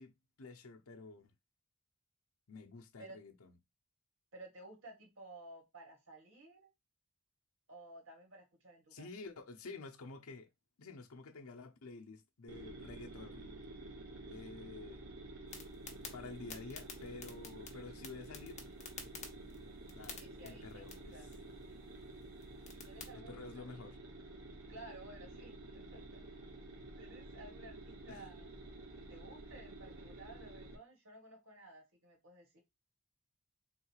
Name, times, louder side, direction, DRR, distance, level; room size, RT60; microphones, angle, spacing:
voice 1, 0.0-1.3 2.5-3.6 8.9-10.5 10.8-13.6 14.3-15.1 16.0-18.6 19.9-21.2 23.1-24.0 28.1-28.3, left 3 dB, 75° left, 0.7 m, -50 dB
voice 2, 4.3-6.7 7.7-9.1 20.2-21.3 22.7-23.7 24.7-26.3 27.0-28.6 29.0-32.6, right 2 dB, 65° right, 1.8 m, -55 dB
sound 1, 12.5-30.8, right 2 dB, 85° right, 1.2 m, -51 dB
sound 2, 15.5-23.1, left 5 dB, 30° left, 0.9 m, -53 dB
3.8 x 2.4 x 4.6 m
head